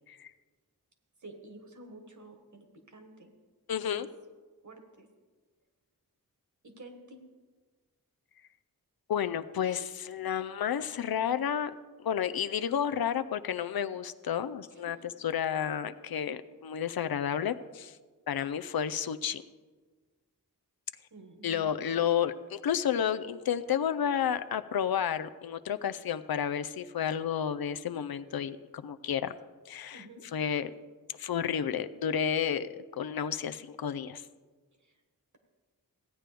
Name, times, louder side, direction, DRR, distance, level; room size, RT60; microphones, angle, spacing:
voice 1, 1.2-3.3 3.8-4.1 4.6-5.1 6.6-7.2 14.9-15.1 21.1-21.9 29.9-30.3 34.8-35.0, right 2 dB, 55° right, 4 dB, 1.5 m, -50 dB
voice 2, 3.7-4.1 9.1-11.7 12.0-18.0 18.3-19.4 21.4-29.3 29.7-30.0 30.3-30.7 31.1-34.3, left 8 dB, 85° left, 11 dB, 0.5 m, -31 dB
16.0 x 9.0 x 3.4 m, 1.4 s
wide cardioid pair, 70°, 36 cm